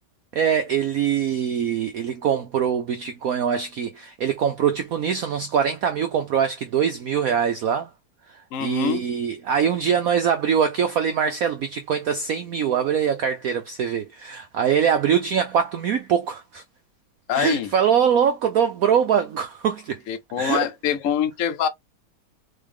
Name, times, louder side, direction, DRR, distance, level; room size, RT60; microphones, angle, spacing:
voice 1, 0.3-7.9 8.6-16.6 17.3-20.0 20.4-20.7, right 8 dB, 80° right, 0.7 m, -23 dB
voice 2, 8.5-9.0 17.3-17.7 20.1-21.7, left 9 dB, 60° left, 0.8 m, -24 dB
4.0 x 3.4 x 3.5 m
omnidirectional pair, 2.2 m